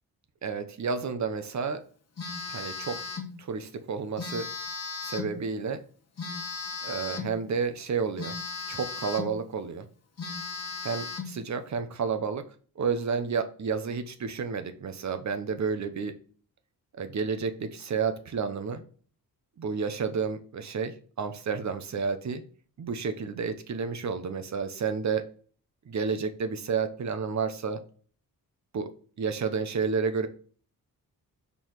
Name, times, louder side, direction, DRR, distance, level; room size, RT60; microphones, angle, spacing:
voice 1, 0.4-1.8 2.5-3.0 3.4-4.5 5.0-5.8 6.8-8.4 8.7-9.9 10.8-12.4 12.8-16.1 17.0-18.8 19.6-22.4 22.8-25.2 25.9-27.8 28.7-28.9 29.2-30.3, right 5 dB, 50° right, 9 dB, 0.9 m, -31 dB
Telephone, 2.2-3.3 4.2-5.4 6.2-7.4 8.2-9.4 9.8-9.9 10.2-11.4, left 4 dB, 45° left, 1.4 m, -36 dB
5.7 x 4.6 x 4.6 m, 0.43 s
wide cardioid pair, 170°, 36 cm